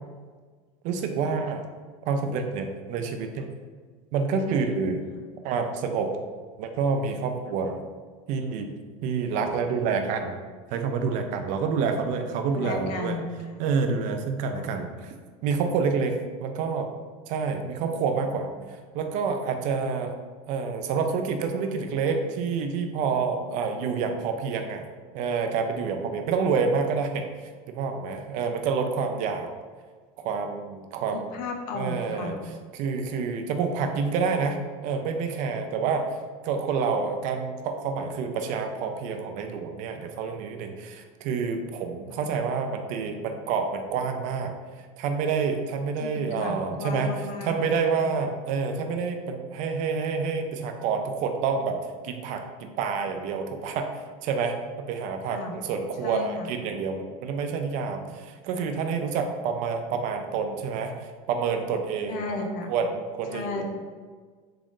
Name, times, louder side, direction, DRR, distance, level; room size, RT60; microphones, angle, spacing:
voice 1, 0.8-1.6 2.1-3.5 4.1-5.0 5.4-6.1 6.6-7.8 8.3-8.7 9.0-10.4 10.7-13.2 13.6-15.1 15.4-16.2 16.4-16.9 17.3-18.5 18.9-20.1 20.5-24.8 25.1-27.3 27.7-29.5 30.2-31.3 31.7-36.1 36.4-44.6 45.0-51.8 52.0-53.9 54.2-54.6 54.9-63.6, right 5 dB, 50° right, 5 dB, 0.4 m, -28 dB
voice 2, 12.5-13.6 14.5-14.7 18.0-18.1 31.1-32.4 33.5-33.8 42.1-42.3 46.0-47.6 48.0-48.1 55.3-55.5 56.0-56.5 62.1-62.7 63.3-63.6, left 3 dB, 55° left, 3 dB, 0.6 m, -34 dB
3.7 x 2.4 x 3.6 m, 1.5 s
cardioid pair, 150°, 17 cm